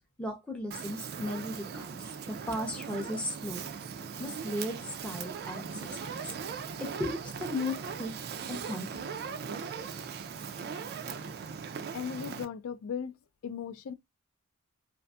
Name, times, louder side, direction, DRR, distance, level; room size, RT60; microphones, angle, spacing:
voice 1, 0.2-3.7 4.2-6.3 6.8-8.1 8.5-9.1, left 1 dB, 5° left, 0.6 m, -36 dB
Fire, 0.7-12.5, right 6 dB, 45° right, 0.3 m, -39 dB
voice 2, 11.9-13.1 13.4-13.9, left 7 dB, 65° left, 0.3 m, -37 dB
2.6 x 2.4 x 2.3 m
head